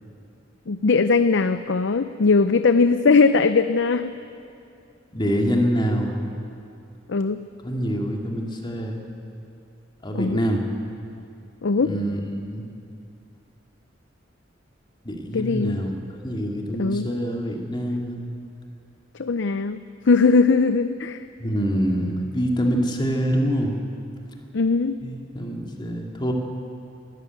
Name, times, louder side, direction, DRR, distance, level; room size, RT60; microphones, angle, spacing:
voice 1, 0.7-4.1 7.1-7.4 10.1-10.4 11.6-11.9 15.3-15.8 16.8-17.1 19.2-19.8 20.1-21.2 24.5-25.0, left 4 dB, 70° left, 11 dB, 0.6 m, -20 dB
voice 2, 5.1-6.2 7.6-9.0 10.0-10.6 11.8-12.7 15.0-15.9 16.2-18.2 21.4-23.8 25.0-26.3, equal, 25° left, 1 dB, 2.5 m, -25 dB
23.0 x 14.0 x 9.3 m, 2.6 s
head